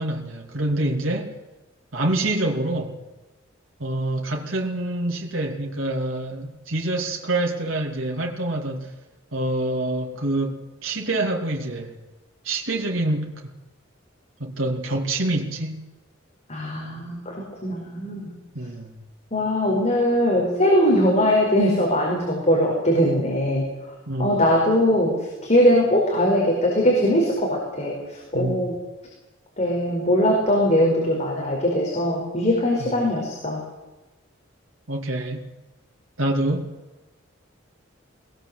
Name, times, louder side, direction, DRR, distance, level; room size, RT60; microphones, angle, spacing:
voice 1, 0.0-1.4 1.9-2.9 3.8-8.9 9.3-12.0 12.4-13.4 14.4-15.8 18.5-19.0 24.1-24.4 28.3-28.6 32.8-32.9 34.9-35.4 36.2-36.7, right 1 dB, 75° right, 1 dB, 2.9 m, -26 dB
voice 2, 16.5-18.3 19.3-23.7 24.2-25.1 25.4-27.9 28.3-28.7 29.6-33.6, equal, 35° left, -2 dB, 5.0 m, -21 dB
22.5 x 19.5 x 8.0 m, 1.1 s
head